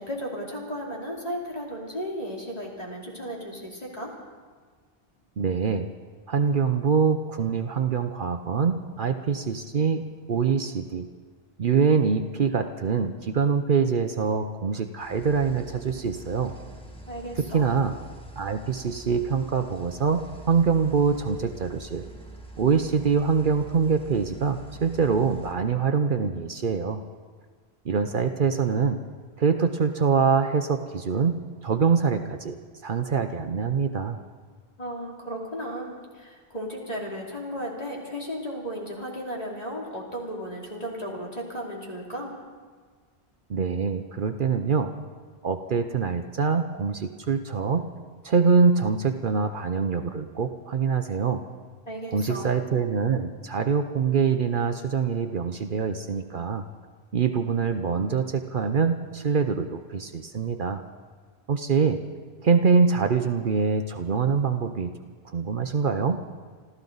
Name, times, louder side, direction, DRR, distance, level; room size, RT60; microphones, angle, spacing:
voice 1, 0.0-4.1 17.1-17.7 34.8-42.3 51.9-52.5, equal, 40° left, -3 dB, 3.0 m, -35 dB
voice 2, 5.4-5.9 6.3-11.1 11.6-16.5 17.4-17.9 18.4-22.1 22.6-27.0 27.8-29.0 29.4-31.4 31.6-34.2 43.5-44.9 45.4-47.8 48.2-51.4 52.1-56.6 57.1-60.8 61.5-62.0 62.4-64.9 65.3-66.2, right 5 dB, 55° right, 7 dB, 0.9 m, -24 dB
sound 1, 15.0-25.5, right 1 dB, 5° left, 1.8 m, -45 dB
27.0 x 13.5 x 4.0 m, 1.6 s
omnidirectional pair, 1.1 m